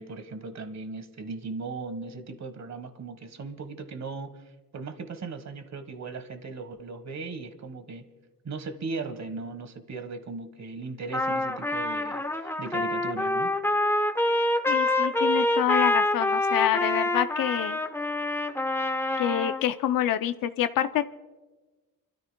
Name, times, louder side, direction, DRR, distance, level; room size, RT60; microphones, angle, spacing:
voice 1, 0.0-4.4 4.7-8.1 8.4-13.5, right 4 dB, 55° right, 9 dB, 1.4 m, -38 dB
Trumpet, 11.1-19.6, left 1 dB, 5° left, 0.9 m, -26 dB
voice 2, 14.7-17.8 19.2-21.0, left 11 dB, 80° left, 11 dB, 0.5 m, -27 dB
29.0 x 13.5 x 2.2 m, 1.2 s
cardioid pair, 65°, 34 cm